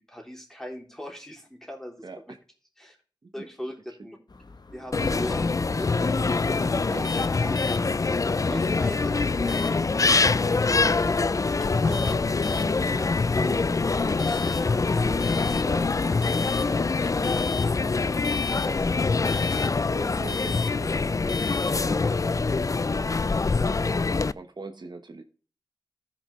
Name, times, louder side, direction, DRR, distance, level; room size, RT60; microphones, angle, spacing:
voice 1, 0.0-2.0 2.8-3.0 3.3-4.2 4.7-6.2 6.7-7.5 8.0-11.2 11.6-13.7 14.0-15.9 17.0-17.2, left 1 dB, 5° left, 1 dB, 3.3 m, -39 dB
sound 1, 4.3-21.7, left 5 dB, 65° left, 1.0 m, -40 dB
sound 2, 4.7-11.8, right 4 dB, 90° right, 1.9 m, -47 dB
sound 3, 4.9-24.3, left 4 dB, 45° left, 0.4 m, -24 dB
voice 2, 4.9-5.3 6.9-7.1 11.8-12.1 16.7-17.0 18.5-22.6 22.9-23.2 24.3-25.2, right 3 dB, 70° right, 6 dB, 1.1 m, -43 dB
14.0 x 6.0 x 3.2 m, 0.39 s
wide cardioid pair, 50°, 8 cm